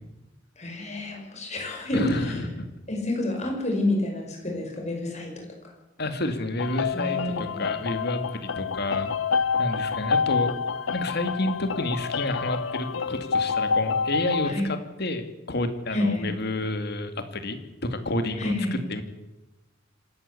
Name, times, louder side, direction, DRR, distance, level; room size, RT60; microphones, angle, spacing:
voice 1, 0.6-2.4 2.9-5.7 6.9-7.6 14.4-14.7 15.9-16.3 18.4-18.8, left 1 dB, 35° left, 1 dB, 5.8 m, -29 dB
voice 2, 1.9-2.7 6.0-9.2 9.6-17.6 17.9-18.5 18.9-19.0, left 2 dB, 55° left, 8 dB, 2.2 m, -30 dB
sound 1, 6.6-14.5, left 5 dB, 80° left, 0.7 m, -27 dB
26.0 x 12.5 x 8.4 m, 1.0 s
head